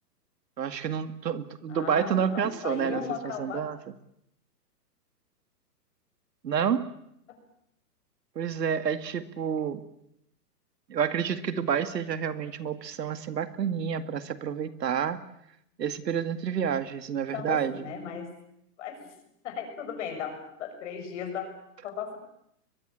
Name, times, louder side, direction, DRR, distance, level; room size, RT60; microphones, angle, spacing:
voice 1, 0.6-3.0 3.4-3.8 6.4-6.9 8.4-9.8 10.9-15.2 15.8-17.9, right 8 dB, 80° right, 11 dB, 2.2 m, -29 dB
voice 2, 1.7-3.6 17.3-18.3 18.8-19.1 19.4-21.5 21.8-22.2, left 7 dB, 45° left, 7 dB, 6.6 m, -36 dB
22.0 x 22.0 x 8.9 m, 0.76 s
hypercardioid pair, 155°, 48 cm